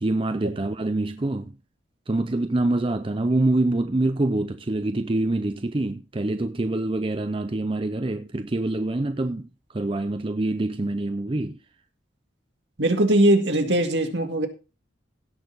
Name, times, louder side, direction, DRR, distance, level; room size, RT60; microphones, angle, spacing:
voice 1, 0.0-1.5 2.1-9.5 9.7-11.6, right 2 dB, 25° right, 0.5 m, -25 dB
voice 2, 12.8-14.5, right 1 dB, 65° right, 2.1 m, -20 dB
17.0 x 6.6 x 4.0 m
head